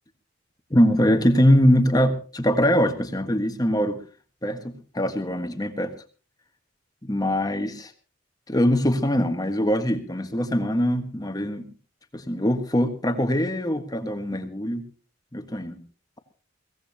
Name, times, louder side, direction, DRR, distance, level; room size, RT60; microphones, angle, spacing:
voice 1, 0.7-4.0 4.4-5.9 7.1-7.9 8.5-11.6 12.1-14.8 15.3-15.8, equal, 20° left, 7 dB, 1.5 m, -22 dB
23.0 x 16.5 x 2.9 m, 0.35 s
head